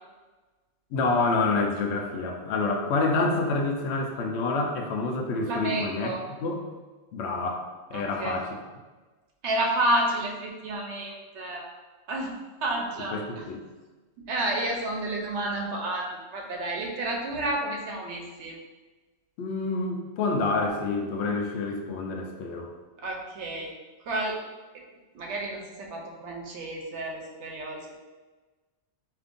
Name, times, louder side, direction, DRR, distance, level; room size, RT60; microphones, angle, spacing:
voice 1, 0.9-6.1 6.4-6.6 7.1-8.6 13.1-13.6 19.4-22.7, left 3 dB, 75° left, 2 dB, 0.9 m, -27 dB
voice 2, 5.4-6.2 7.9-8.4 9.4-11.7 12.1-13.4 14.2-18.6 23.0-23.7 24.1-24.4 24.7-24.8 25.1-28.0, right 1 dB, 85° right, 0 dB, 1.0 m, -30 dB
5.1 x 2.8 x 2.5 m, 1.3 s
omnidirectional pair, 1.1 m